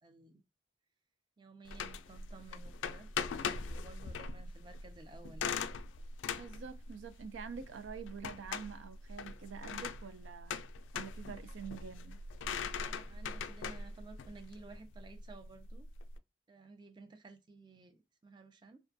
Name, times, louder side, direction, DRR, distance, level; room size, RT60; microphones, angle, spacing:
voice 1, 0.0-0.4 1.4-5.6 12.7-15.9 16.5-18.8, right 3 dB, 25° right, 0.4 m, -55 dB
sound 1, 1.7-16.2, left 5 dB, 90° left, 0.3 m, -41 dB
voice 2, 6.4-10.6 10.9-12.2, right 6 dB, 90° right, 0.4 m, -46 dB
2.4 x 2.2 x 2.6 m
head